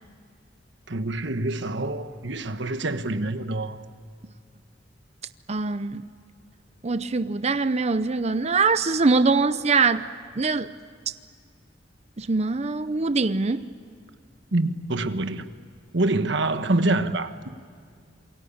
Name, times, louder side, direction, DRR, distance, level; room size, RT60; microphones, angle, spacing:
voice 1, 0.9-3.8 14.5-15.4 15.9-17.5, right 2 dB, 70° right, 1.4 m, -26 dB
voice 2, 5.5-6.0 6.8-10.1 10.4-10.7 12.2-13.7, right 4 dB, 35° right, 0.7 m, -23 dB
27.5 x 22.5 x 8.7 m
head